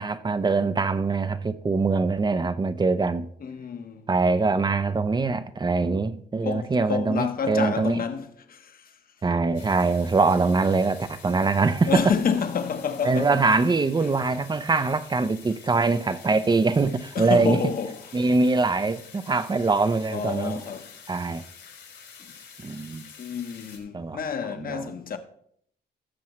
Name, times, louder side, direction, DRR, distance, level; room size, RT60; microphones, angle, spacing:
voice 1, 0.0-3.3 4.1-8.0 9.2-12.0 13.0-17.6 18.1-20.6 21.1-21.4 22.6-23.1 23.9-24.2 24.6-24.9, right 3 dB, 25° right, 0.6 m, -23 dB
voice 2, 3.4-4.1 6.4-9.0 11.9-13.5 17.1-18.3 20.1-20.9 22.2-22.3 22.6-22.7 23.2-25.2, left 6 dB, 55° left, 1.1 m, -29 dB
sound 1, 9.5-23.8, left 6 dB, 80° left, 3.7 m, -48 dB
17.5 x 7.5 x 3.1 m
cardioid pair, 120°, 18 cm